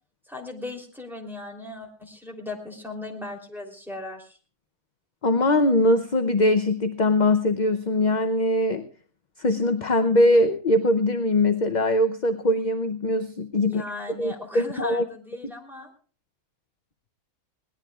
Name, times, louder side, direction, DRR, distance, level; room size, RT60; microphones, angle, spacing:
voice 1, 0.3-4.4 13.6-15.9, left 2 dB, ahead, 1 dB, 3.3 m, -38 dB
voice 2, 5.2-8.8 9.4-13.8 14.2-15.0 15.4-15.5, left 1 dB, 40° left, 7 dB, 0.7 m, -22 dB
22.5 x 18.5 x 2.4 m, 0.40 s
omnidirectional pair, 1.5 m